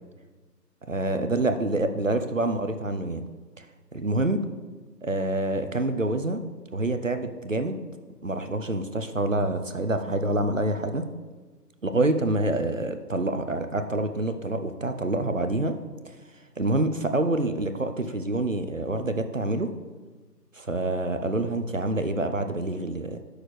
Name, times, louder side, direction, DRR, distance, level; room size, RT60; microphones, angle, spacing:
voice 1, 0.9-3.2 3.6-3.7 3.9-4.5 5.0-6.4 6.7-7.8 8.2-11.1 11.8-15.8 16.6-19.7 20.5-23.2, right 2 dB, 50° right, 8 dB, 0.6 m, -27 dB
10.0 x 6.4 x 3.1 m, 1.3 s
figure-of-eight pair, 180°, 49 cm